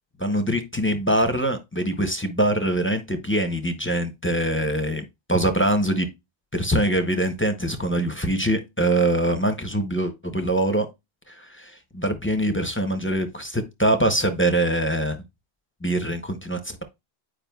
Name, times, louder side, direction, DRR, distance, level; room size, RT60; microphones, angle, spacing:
voice 1, 0.2-6.1 6.5-10.9 11.3-15.2 15.8-16.8, right 1 dB, 15° left, 0.6 m, -23 dB
9.0 x 4.8 x 2.3 m
omnidirectional pair, 1.1 m